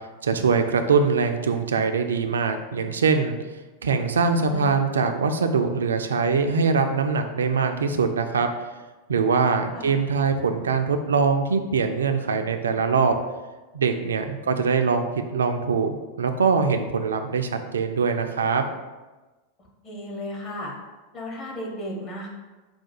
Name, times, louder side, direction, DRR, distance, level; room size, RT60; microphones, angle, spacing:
voice 1, 0.2-3.4 3.8-8.5 9.1-13.1 13.7-18.7, right 5 dB, 70° right, 6 dB, 0.3 m, -23 dB
voice 2, 4.3-4.8 9.7-9.9 14.4-14.6 19.8-20.7 21.1-22.3, equal, 30° left, -2 dB, 1.1 m, -35 dB
4.7 x 2.2 x 4.3 m, 1.2 s
figure-of-eight pair, 90°, 0 cm